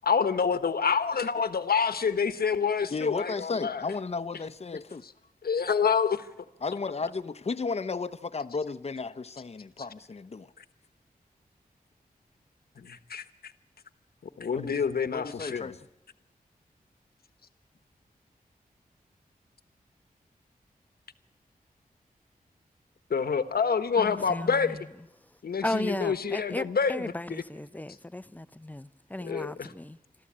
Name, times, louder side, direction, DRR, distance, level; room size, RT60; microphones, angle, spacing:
voice 1, 0.0-3.8 5.4-6.3 12.8-13.5 14.4-15.7 23.1-24.9 25.4-27.4 29.2-29.7, left 6 dB, 80° left, 1.2 m, -27 dB
voice 2, 2.9-5.0 6.6-10.5 14.5-14.7 15.1-15.9, left 4 dB, 40° left, 0.8 m, -33 dB
voice 3, 24.0-24.8 25.6-30.0, left 1 dB, 10° left, 0.7 m, -35 dB
26.0 x 13.5 x 8.7 m
wide cardioid pair, 75°, 16 cm